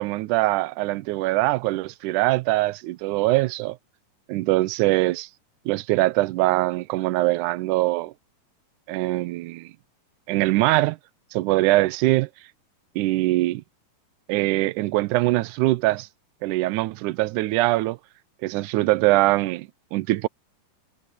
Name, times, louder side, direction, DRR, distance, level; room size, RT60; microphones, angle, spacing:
voice 1, 0.0-3.8 4.3-5.3 5.7-8.1 8.9-9.7 10.3-11.0 11.3-12.3 13.0-13.6 14.3-16.1 16.4-18.0 18.4-20.3, right 19 dB, 75° right, 1.9 m, -22 dB
omnidirectional pair, 4.0 m